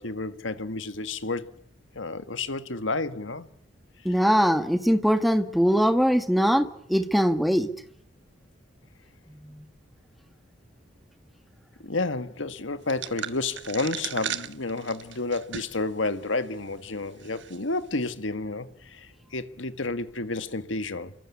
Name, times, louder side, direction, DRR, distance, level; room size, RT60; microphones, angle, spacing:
voice 1, 0.0-1.6 2.0-3.5 11.8-21.1, left 3 dB, 75° left, 1.7 m, -31 dB
voice 2, 4.1-7.7 9.5-9.6, equal, ahead, 1.8 m, -22 dB
sound 1, 12.9-15.9 16.3-16.4 17.2-17.6, right 9 dB, 65° right, 1.4 m, -36 dB
28.5 x 24.0 x 8.5 m
head